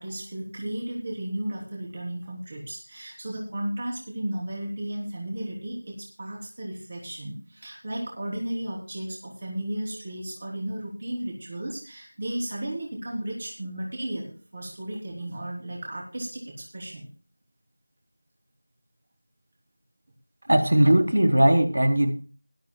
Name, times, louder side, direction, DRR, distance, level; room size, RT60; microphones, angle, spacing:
voice 1, 0.0-17.1, right 1 dB, 25° right, -1 dB, 3.5 m, -34 dB
voice 2, 20.5-22.1, right 1 dB, 65° right, 5 dB, 3.6 m, -19 dB
20.0 x 13.0 x 2.3 m, 0.37 s
figure-of-eight pair, 175°, 0 cm